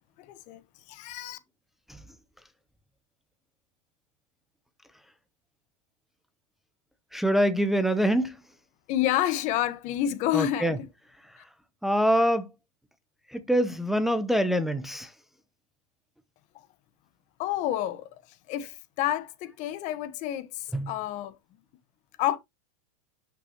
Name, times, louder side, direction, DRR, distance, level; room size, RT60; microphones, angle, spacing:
voice 1, 0.2-0.6 0.9-1.4 8.9-10.9 11.4-11.5 17.4-18.1 18.5-21.4 22.2-22.4, left 12 dB, 45° left, 1.2 m, -29 dB
voice 2, 7.1-8.3 10.3-10.7 11.8-12.5 13.3-15.1 20.7-20.9, equal, ahead, 0.7 m, -24 dB
10.5 x 6.0 x 2.9 m
supercardioid pair, 125°, 17 cm